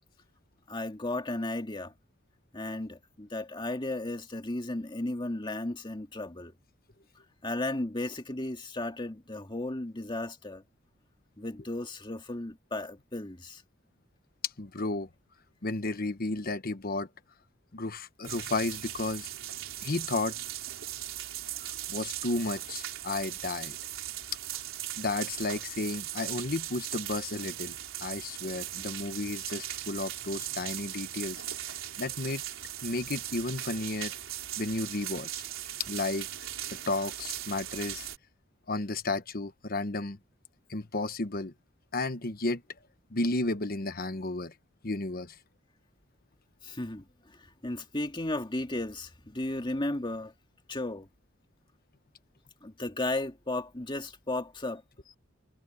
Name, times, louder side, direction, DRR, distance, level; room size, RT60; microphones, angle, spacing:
voice 1, 0.7-1.9 2.5-6.5 7.4-10.6 11.4-13.6 46.6-47.4 47.6-50.3 50.7-51.1 52.6-54.8, left 2 dB, 25° left, 2.2 m, -34 dB
voice 2, 14.4-15.1 15.6-17.1 17.7-19.3 19.8-20.4 21.6-23.8 25.0-32.4 32.8-34.1 34.6-35.3 35.8-36.3 36.7-38.1 38.7-40.2 40.7-41.5 41.9-42.6 43.1-44.5 44.8-45.4, left 2 dB, 50° left, 1.1 m, -33 dB
sound 1, 18.2-38.2, right 12 dB, 75° right, 3.8 m, -39 dB
head